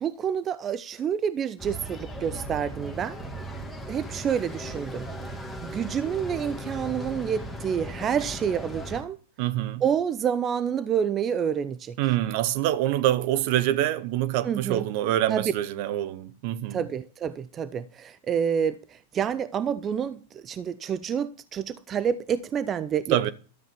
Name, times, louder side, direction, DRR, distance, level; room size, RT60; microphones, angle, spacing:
voice 1, 0.0-3.2 3.9-9.2 9.8-12.0 14.4-14.9 15.3-15.5 16.7-23.3, right 8 dB, 30° right, 0.6 m, -28 dB
sound 1, 1.6-9.0, equal, 5° left, 2.3 m, -37 dB
voice 2, 9.4-9.8 12.0-16.8 23.1-23.3, right 13 dB, 55° right, 0.9 m, -25 dB
13.0 x 7.4 x 6.9 m
hypercardioid pair, 100°, 0 cm